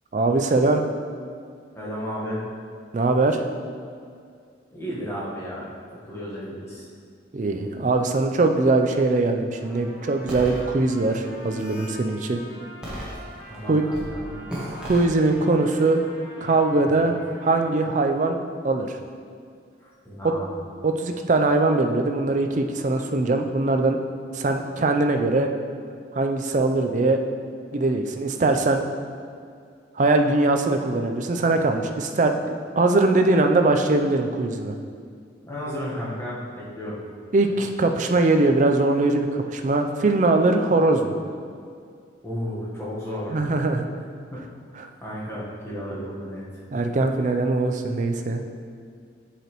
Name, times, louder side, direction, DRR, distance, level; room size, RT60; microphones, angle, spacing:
voice 1, 0.1-0.8 2.9-3.5 7.3-12.4 13.7-13.8 14.8-16.0 16.4-18.4 18.6-19.0 20.2-20.3 20.8-24.0 24.3-25.5 26.1-27.2 27.7-28.8 30.0-32.3 32.8-34.7 37.3-41.1 43.3-43.9 44.8-44.9 46.7-48.4, right 2 dB, 40° right, 5 dB, 0.4 m, -21 dB
voice 2, 1.7-2.4 4.7-5.7 6.0-6.8 13.5-14.4 16.8-17.1 19.8-20.6 35.4-37.0 42.2-43.5 44.3-44.5 44.8-46.4, equal, 15° left, -7 dB, 1.2 m, -33 dB
Trumpet, 9.6-18.0, equal, 85° left, 1.6 m, -45 dB
sound 1, 10.3-10.6 11.3-11.9 12.8-13.6 13.9-14.1 14.5-15.1, equal, 5° right, 1.3 m, -34 dB
7.7 x 4.9 x 3.0 m, 2.2 s
head